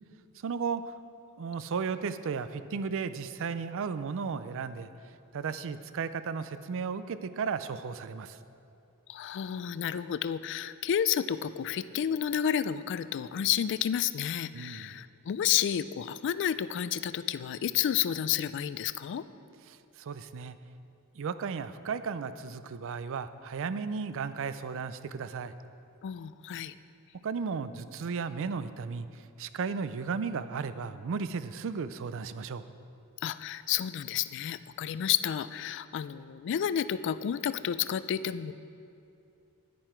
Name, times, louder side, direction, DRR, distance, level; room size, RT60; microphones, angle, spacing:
voice 1, 0.4-0.9 1.4-4.9 5.3-8.4 14.5-14.9 19.7-20.6 21.1-25.5 27.2-32.6, right 5 dB, 60° right, 13 dB, 0.4 m, -35 dB
voice 2, 9.1-19.2 26.0-26.7 33.2-38.5, left 9 dB, 55° left, 14 dB, 0.3 m, -31 dB
10.5 x 9.8 x 4.4 m, 2.7 s
head